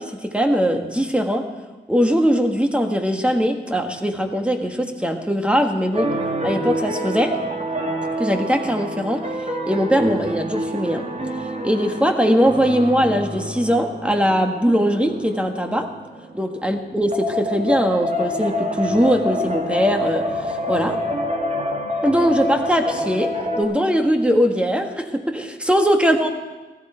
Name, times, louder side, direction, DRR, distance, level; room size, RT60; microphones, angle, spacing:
voice 1, 0.0-1.5 1.9-6.1 6.4-7.3 8.2-9.3 9.7-11.0 11.6-15.9 16.3-21.0 22.0-26.3, equal, 5° right, 4 dB, 1.4 m, -20 dB
sound 1, 5.9-23.6, equal, 35° right, 2.0 m, -27 dB
15.5 x 14.5 x 4.5 m, 1.2 s
wide cardioid pair, 105°, 19 cm